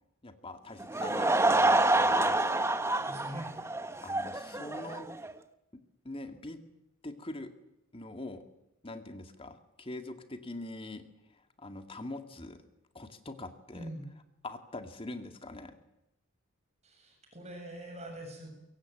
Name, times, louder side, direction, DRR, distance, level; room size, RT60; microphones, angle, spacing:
voice 1, 0.2-2.4 4.0-5.1 6.0-6.6 7.0-7.5 7.9-8.4 8.8-12.6 12.9-13.9 14.4-15.8, left 2 dB, 25° left, 7 dB, 2.2 m, -43 dB
Laughter / Crowd, 0.8-5.3, right 2 dB, 15° right, 1.1 m, -27 dB
voice 2, 3.0-3.5 13.7-14.1 16.8-18.5, right 1 dB, 30° right, 3 dB, 7.2 m, -43 dB
23.5 x 23.0 x 9.2 m, 0.87 s
head